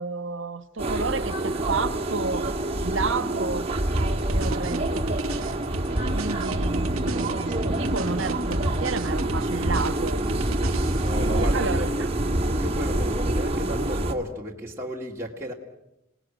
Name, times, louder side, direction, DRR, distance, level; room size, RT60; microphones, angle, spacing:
voice 1, 0.0-2.5 2.8-3.7 4.3-5.1 6.1-10.2 11.1-12.1, right 4 dB, 65° right, 1.2 m, -31 dB
sound 1, 0.8-14.1, right 1 dB, 30° right, 2.0 m, -26 dB
sound 2, 4.0-11.3, right 1 dB, 90° right, 1.5 m, -33 dB
voice 2, 11.0-11.9 12.5-15.5, equal, 10° right, 2.4 m, -33 dB
29.0 x 19.0 x 9.1 m
head